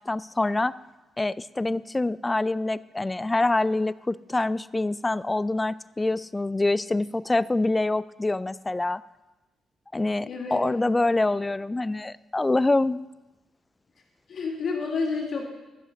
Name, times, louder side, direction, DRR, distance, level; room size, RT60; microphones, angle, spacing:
voice 1, 0.1-0.7 1.2-9.0 9.9-13.0, left 2 dB, 15° left, 18 dB, 0.3 m, -25 dB
voice 2, 10.2-10.7 14.3-15.5, left 4 dB, 55° left, -1 dB, 2.5 m, -29 dB
11.5 x 7.6 x 6.5 m, 1.1 s
cardioid pair, 90°, 0 cm